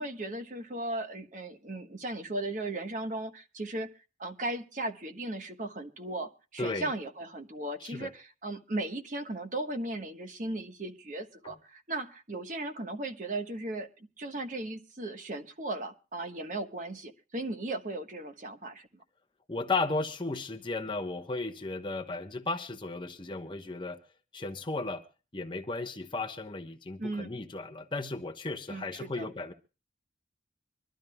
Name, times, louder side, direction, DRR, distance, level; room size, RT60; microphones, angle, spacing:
voice 1, 0.0-3.9 4.2-13.9 14.2-18.9 27.0-27.4 28.7-29.3, right 2 dB, 45° right, 1.2 m, -36 dB
voice 2, 6.6-6.9 7.8-8.1 11.4-11.5 19.5-24.0 24.3-25.0 25.3-29.5, left 3 dB, 25° left, 1.0 m, -35 dB
24.5 x 12.5 x 2.2 m
head